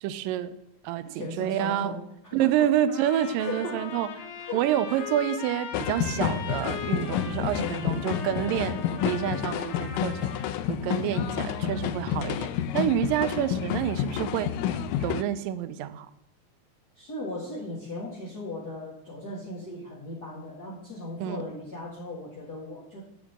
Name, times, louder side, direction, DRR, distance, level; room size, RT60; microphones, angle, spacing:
voice 1, 0.0-0.6 0.8-1.9 2.3-4.1 4.5-10.3 10.7-14.5 15.0-16.1 21.2-21.4, right 11 dB, 80° right, 12 dB, 2.3 m, -28 dB
voice 2, 1.1-2.0 2.2-2.7 3.4-3.8 4.4-4.6 4.9-5.1 7.3-7.9 11.1-11.8 13.5-13.8 17.0-23.0, left 1 dB, 35° left, -5 dB, 2.1 m, -37 dB
Trumpet, 2.9-10.6, left 5 dB, 60° left, 2.1 m, -39 dB
sound 1, 5.7-15.2, left 9 dB, 80° left, 2.1 m, -29 dB
11.0 x 5.0 x 8.0 m, 0.77 s
omnidirectional pair, 4.0 m